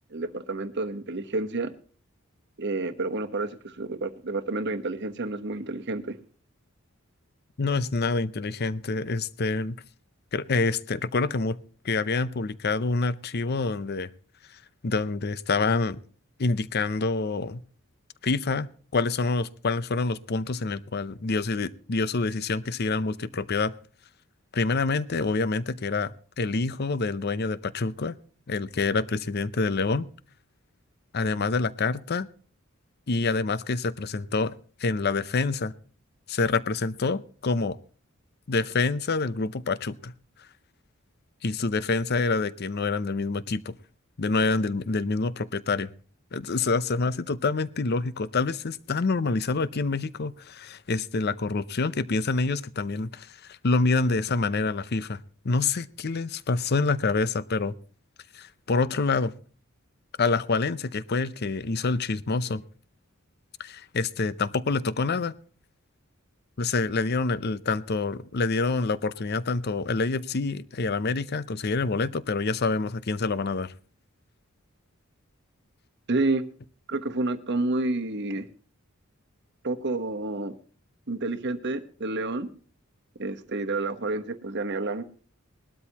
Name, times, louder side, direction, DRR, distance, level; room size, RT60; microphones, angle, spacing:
voice 1, 0.1-1.7 2.6-6.2 76.1-76.4 76.9-78.5 79.6-80.5 81.1-82.5 83.2-85.0, right 2 dB, 55° right, 1.1 m, -29 dB
voice 2, 7.6-9.8 10.3-11.6 11.8-14.1 14.8-16.0 16.4-17.6 18.2-18.7 18.9-23.7 24.5-28.1 28.5-30.1 31.1-32.3 33.1-34.5 34.8-35.7 36.3-37.8 38.5-40.1 41.4-43.7 44.2-45.9 46.3-57.7 58.3-59.3 60.2-62.6 63.6-65.3 66.6-73.7, left 3 dB, 50° left, 0.7 m, -27 dB
20.0 x 12.5 x 2.9 m
head